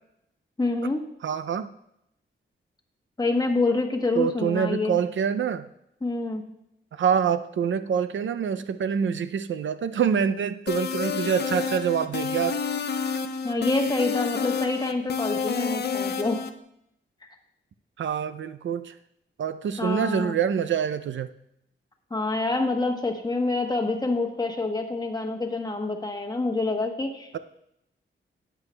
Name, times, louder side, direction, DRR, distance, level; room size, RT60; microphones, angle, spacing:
voice 1, 0.6-1.0 3.2-5.0 6.0-6.4 13.4-16.4 19.8-20.4 22.1-27.4, left 3 dB, 20° left, 3 dB, 1.0 m, -27 dB
voice 2, 1.2-1.7 4.2-5.7 6.9-12.6 18.0-18.9 19.4-21.3 27.3-27.4, right 7 dB, 65° right, 12 dB, 0.4 m, -26 dB
sound 1, 10.7-16.5, left 6 dB, 50° left, 0.5 m, -29 dB
13.5 x 8.9 x 2.2 m, 0.78 s
wide cardioid pair, 160°, 21 cm